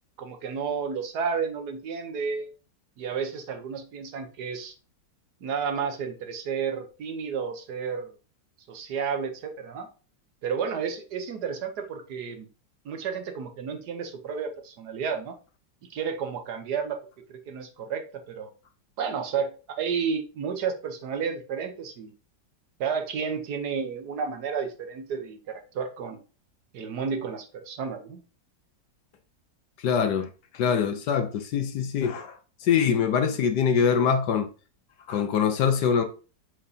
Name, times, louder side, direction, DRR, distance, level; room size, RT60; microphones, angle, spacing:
voice 1, 0.2-2.5 3.0-4.7 5.4-8.1 8.7-9.9 10.4-12.5 12.8-15.3 15.9-17.0 17.3-18.5 19.0-22.1 22.8-26.2 26.7-28.2, right 6 dB, 65° right, 1.4 m, -31 dB
voice 2, 29.8-30.3 30.5-34.5 35.1-36.0, left 7 dB, 70° left, 1.4 m, -24 dB
7.5 x 4.8 x 2.7 m
omnidirectional pair, 1.9 m